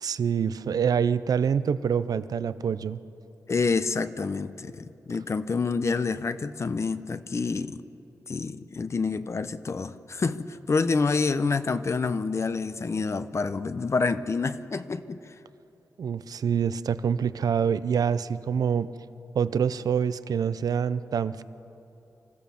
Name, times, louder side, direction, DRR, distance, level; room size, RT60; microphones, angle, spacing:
voice 1, 0.0-3.0 16.0-18.9 19.3-21.4, right 7 dB, 80° right, 15 dB, 0.6 m, -26 dB
voice 2, 3.5-7.8 8.3-15.2, left 4 dB, 50° left, 12 dB, 0.8 m, -28 dB
26.0 x 14.5 x 7.0 m, 3.0 s
wide cardioid pair, 85°, 6 cm